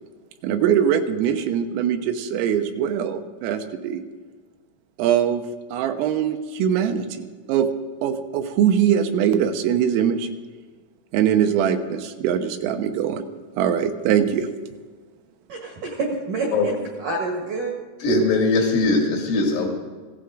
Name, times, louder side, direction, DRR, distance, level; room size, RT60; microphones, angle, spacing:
voice 1, 0.4-4.0 5.0-5.4 5.7-7.7 8.0-10.3 11.1-13.2 13.6-14.5, right 9 dB, 85° right, 6 dB, 3.5 m, -22 dB
voice 2, 15.5-17.7, right 3 dB, 65° right, -1 dB, 2.1 m, -28 dB
voice 3, 18.0-19.7, left 2 dB, 80° left, 1 dB, 4.9 m, -20 dB
17.0 x 16.0 x 3.8 m, 1.5 s
omnidirectional pair, 5.9 m